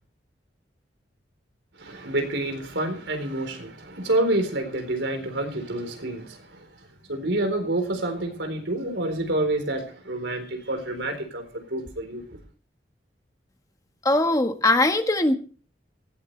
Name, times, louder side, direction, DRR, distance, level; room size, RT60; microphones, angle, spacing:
voice 1, 1.8-6.6 7.1-12.2, right 1 dB, 85° right, 6 dB, 4.1 m, -28 dB
voice 2, 14.0-15.3, left 2 dB, 20° left, 6 dB, 1.5 m, -20 dB
19.0 x 17.0 x 3.3 m, 0.39 s
head